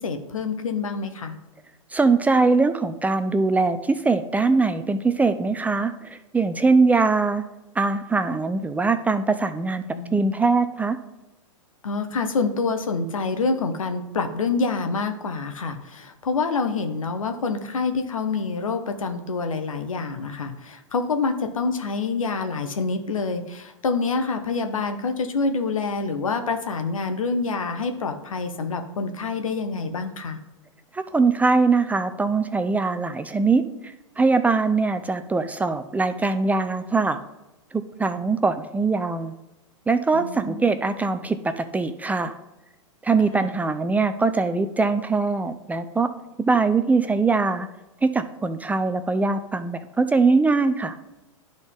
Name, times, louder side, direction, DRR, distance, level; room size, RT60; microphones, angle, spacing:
voice 1, 0.0-1.4 9.9-10.3 11.8-30.4 40.1-40.7 43.3-43.5, left 4 dB, 80° left, 7 dB, 1.0 m, -27 dB
voice 2, 1.9-7.4 7.8-9.8 10.1-11.0 30.9-37.2 37.7-39.4 39.9-42.4 43.0-46.1 46.4-47.7 48.0-51.0, right 4 dB, 10° right, 9 dB, 0.4 m, -22 dB
11.5 x 3.9 x 3.6 m, 1.0 s
hypercardioid pair, 110°, 17 cm